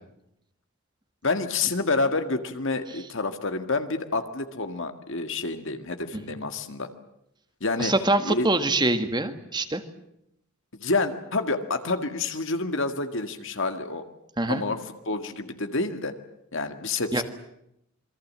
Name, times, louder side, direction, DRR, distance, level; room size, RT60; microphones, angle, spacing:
voice 1, 1.2-6.9 7.6-7.9 8.2-8.5 10.8-14.0 14.5-14.8 15.1-16.1 16.5-17.2, left 3 dB, 60° left, 7 dB, 1.9 m, -28 dB
voice 2, 7.8-9.8 14.4-14.6 17.1-17.2, right 2 dB, 20° right, 9 dB, 1.7 m, -24 dB
27.5 x 22.5 x 7.6 m, 0.79 s
head